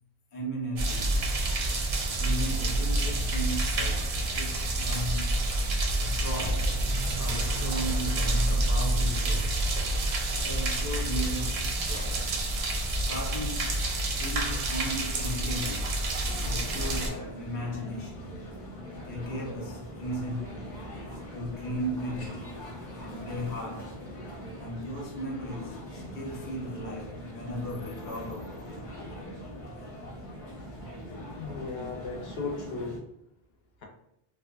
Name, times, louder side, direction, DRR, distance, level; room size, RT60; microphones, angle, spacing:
voice 1, 0.3-1.4 2.2-5.4 6.0-9.8 10.4-12.4 13.1-16.1 16.4-18.4 19.0-20.8 21.3-22.6 23.0-24.1 24.6-29.3, equal, 25° left, 0.5 m, -36 dB
sound 1, 0.8-17.1, right 1 dB, 80° right, 0.8 m, -28 dB
sound 2, 16.2-33.0, equal, 50° left, 0.9 m, -42 dB
voice 2, 31.4-33.0, left 4 dB, 80° left, 0.9 m, -36 dB
2.6 x 2.2 x 2.3 m
omnidirectional pair, 1.0 m